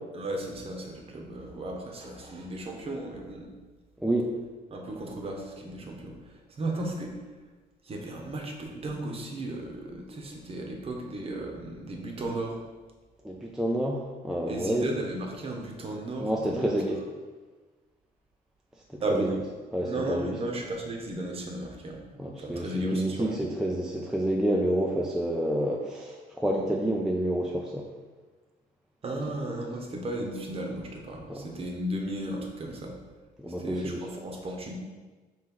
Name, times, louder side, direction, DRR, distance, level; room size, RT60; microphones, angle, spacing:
voice 1, 0.1-3.6 4.7-7.2 7.8-12.6 14.5-16.7 19.0-19.3 19.8-22.0 22.4-23.4 29.0-33.0 33.6-34.7, right 1 dB, 35° right, 1 dB, 0.8 m, -35 dB
voice 2, 4.0-4.3 13.2-14.9 16.2-17.0 18.9-19.4 19.7-20.3 22.2-27.9 31.3-31.5 33.4-34.0, right 1 dB, 5° right, -1 dB, 0.4 m, -29 dB
4.5 x 3.1 x 3.7 m, 1.3 s
cardioid pair, 110°, 17 cm